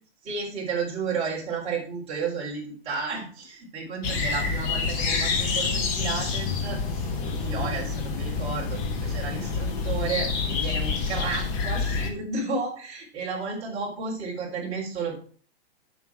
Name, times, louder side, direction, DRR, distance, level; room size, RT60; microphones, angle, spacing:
voice 1, 0.2-15.2, right 4 dB, 20° right, -4 dB, 3.8 m, -32 dB
sound 1, 4.0-12.1, left 4 dB, 25° left, 1.1 m, -27 dB
8.0 x 6.5 x 4.8 m, 0.43 s
hypercardioid pair, 160°, 32 cm